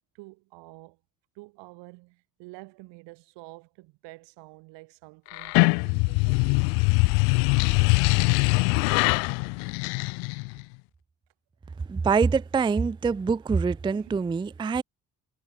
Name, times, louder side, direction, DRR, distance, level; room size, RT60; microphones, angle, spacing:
voice 1, 0.1-1.0 1.4-6.6 13.9-14.2, right 24 dB, 85° right, 5.3 m, -48 dB
sound 1, 5.3-10.6, left 36 dB, 90° left, 0.6 m, -22 dB
voice 2, 11.9-14.8, right 5 dB, 10° right, 0.4 m, -25 dB
supercardioid pair, 65°, 41 cm